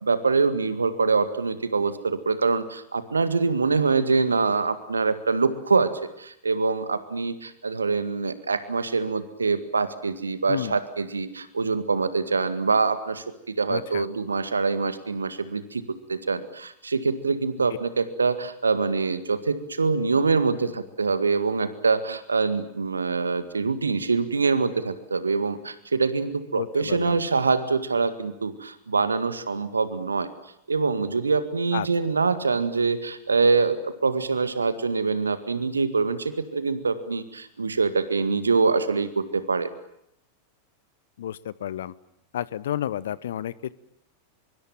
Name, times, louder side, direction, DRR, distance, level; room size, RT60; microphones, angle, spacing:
voice 1, 0.0-5.9 6.2-13.2 13.6-15.8 16.1-30.3 30.7-39.7, right 4 dB, 75° right, 12 dB, 1.9 m, -24 dB
voice 2, 13.7-14.0 26.5-27.2 31.7-31.9 41.2-41.9 42.3-43.7, left 11 dB, 60° left, 21 dB, 0.9 m, -31 dB
24.5 x 23.5 x 8.9 m, 0.78 s
figure-of-eight pair, 90°, 0 cm